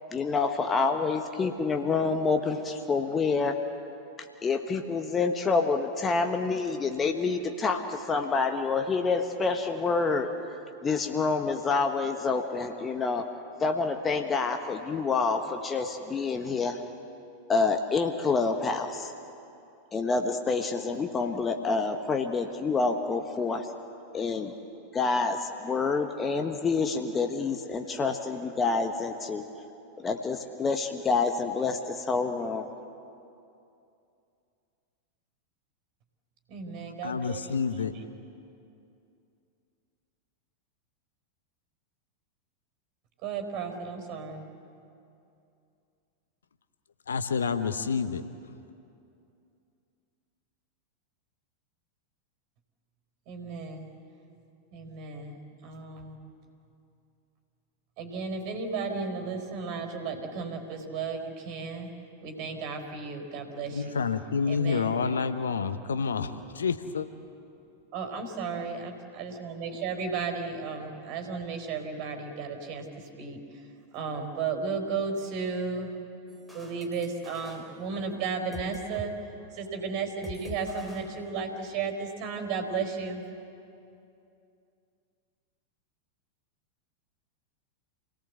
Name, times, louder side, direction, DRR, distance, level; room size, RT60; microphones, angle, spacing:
voice 1, 0.1-3.6 4.4-10.3 10.8-13.2 13.6-16.8 17.5-19.1 19.9-23.7 24.1-24.5 24.9-29.4 30.0-32.7, left 4 dB, 20° left, 5 dB, 1.4 m, -27 dB
voice 2, 36.5-37.5 43.2-44.4 53.3-53.9 54.7-55.4 55.6-56.2 58.0-61.9 62.2-64.0 64.4-65.5 67.9-73.6 73.9-75.9 76.5-79.1 79.5-83.2, right 5 dB, 40° right, 5 dB, 4.3 m, -34 dB
voice 3, 37.0-37.9 47.1-48.2 63.7-67.1, left 5 dB, 70° left, 10 dB, 1.0 m, -28 dB
sound 1, 76.3-79.1 79.4-79.6 80.2-81.8, right 1 dB, ahead, 4.2 m, -46 dB
28.5 x 18.0 x 8.0 m, 2.6 s
figure-of-eight pair, 90°, 0 cm